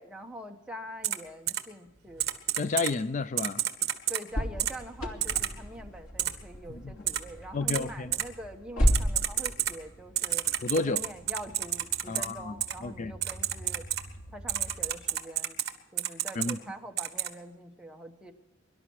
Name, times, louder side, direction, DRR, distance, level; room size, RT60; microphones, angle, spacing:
voice 1, 0.0-2.2 4.1-10.4 10.8-13.8 14.3-15.6 15.9-18.3, right 1 dB, 5° right, 1.3 m, -44 dB
Typing, 1.0-1.2 1.5-1.6 2.2-2.9 3.4-4.2 4.6-4.7 5.2-5.5 6.2-6.3 7.1-7.2 7.7-7.8 8.1-8.2 8.9-9.7 10.2-12.3 12.6-12.7 13.2-14.0 14.5-15.7 16.0-16.5 17.0-17.3, right 12 dB, 55° right, 1.5 m, -29 dB
voice 2, 2.6-3.6 6.7-6.8 7.5-8.1 10.6-11.0 12.1-12.5 12.8-13.1 16.4-16.6, left 3 dB, 40° left, 0.4 m, -31 dB
sound 1, 4.3-15.0, equal, 90° left, 2.7 m, -35 dB
23.5 x 12.0 x 4.7 m
head